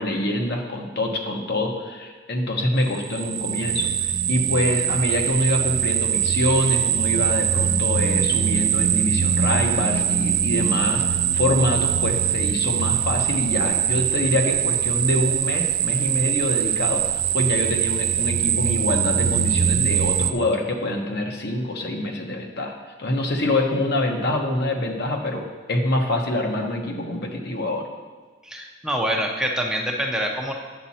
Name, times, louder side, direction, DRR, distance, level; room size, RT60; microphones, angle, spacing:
voice 1, 0.0-27.9, left 1 dB, 60° left, 2 dB, 1.1 m, -25 dB
sound 1, 2.9-20.3, right 9 dB, 50° right, 0.5 m, -22 dB
voice 2, 28.4-30.5, equal, 5° right, 0 dB, 0.6 m, -25 dB
8.9 x 7.3 x 4.2 m, 1.4 s
head